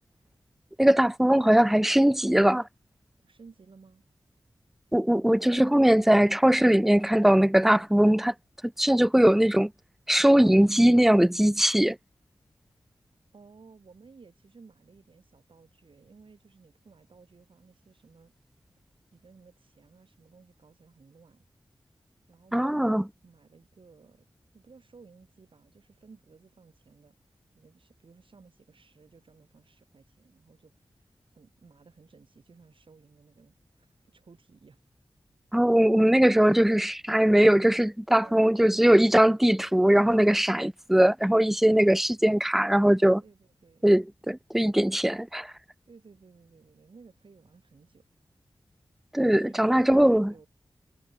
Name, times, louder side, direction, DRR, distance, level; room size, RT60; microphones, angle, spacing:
voice 1, 0.8-2.7 4.9-8.3 8.8-9.7 10.1-12.0 22.5-23.1 35.5-43.2 43.8-45.5 49.1-50.3, right 1 dB, 5° right, 0.3 m, -20 dB
voice 2, 3.2-4.0 13.3-18.3 19.1-21.4 22.3-24.3 24.5-27.2 27.5-34.8 38.1-39.3 43.2-43.9 45.9-48.0 49.2-50.5, right 4 dB, 70° right, 7.3 m, -56 dB
cardioid pair, 40°, 9 cm